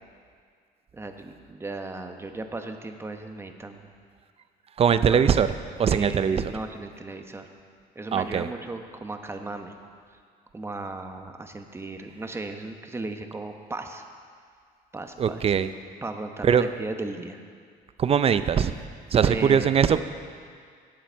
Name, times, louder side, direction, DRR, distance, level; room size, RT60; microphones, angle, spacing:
voice 1, 0.9-3.9 4.9-5.2 5.8-7.5 7.9-9.8 10.5-14.0 14.9-15.4 16.0-17.4 19.2-19.7, right 2 dB, 15° right, 5 dB, 1.0 m, -36 dB
voice 2, 4.8-5.5 5.8-6.5 8.1-8.5 15.2-15.7 16.4-16.7 18.0-18.7 19.1-20.0, right 7 dB, 35° right, 12 dB, 0.5 m, -21 dB
18.0 x 7.7 x 4.5 m, 2.1 s
cardioid pair, 110°, 17 cm